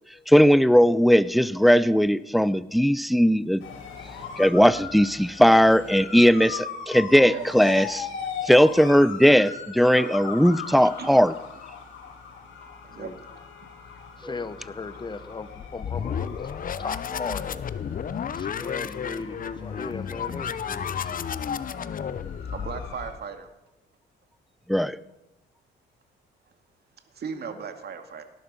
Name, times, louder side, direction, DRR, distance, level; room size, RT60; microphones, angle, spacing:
voice 1, 0.3-3.6 4.4-8.1 8.4-11.3 14.2-14.3 24.7-25.0, equal, ahead, 17 dB, 0.6 m, -18 dB
sound 1, 3.6-23.1, left 6 dB, 75° left, 4.5 m, -39 dB
voice 2, 10.7-11.2 12.8-13.1 21.9-22.0 22.5-23.5 27.1-28.2, right 6 dB, 55° right, 6 dB, 2.1 m, -37 dB
voice 3, 14.2-16.4 16.8-17.5 18.4-21.3 27.3-27.7, left 4 dB, 25° left, 13 dB, 1.1 m, -37 dB
sound 2, 15.6-23.2, left 8 dB, 45° left, 0.8 m, -32 dB
18.0 x 11.5 x 5.5 m, 0.97 s
cardioid pair, 90°, 20 cm